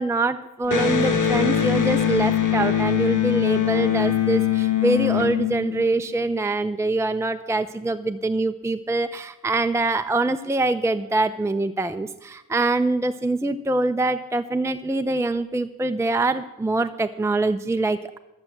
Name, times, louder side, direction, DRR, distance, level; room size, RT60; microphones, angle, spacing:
voice 1, 0.0-18.2, right 2 dB, 10° right, 8 dB, 0.6 m, -24 dB
Electric guitar, 0.7-6.2, left 9 dB, 65° left, 1.4 m, -22 dB
14.0 x 7.3 x 7.8 m, 0.97 s
cardioid pair, 65°, 33 cm